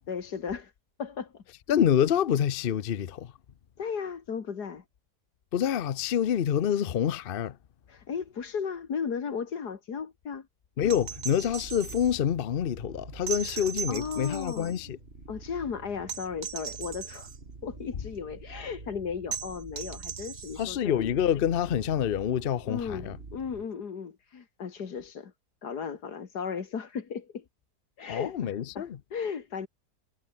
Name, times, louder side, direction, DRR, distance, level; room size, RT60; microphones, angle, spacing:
voice 1, 0.1-0.7 1.0-1.4 3.8-4.8 7.9-10.5 13.4-14.7 15.3-17.3 17.6-21.0 22.7-25.3 25.6-27.4 28.0-29.7, left 6 dB, 75° left, 2.4 m, -36 dB
voice 2, 1.7-3.3 5.5-7.5 10.8-15.0 20.6-23.2 28.1-29.0, left 9 dB, 50° left, 0.7 m, -27 dB
sound 1, 10.8-23.7, right 3 dB, 40° right, 2.9 m, -47 dB
sound 2, 10.9-12.1 13.3-14.8 16.1-17.4 19.3-20.8 22.6-22.7, right 8 dB, 70° right, 1.9 m, -38 dB
omnidirectional pair, 1.7 m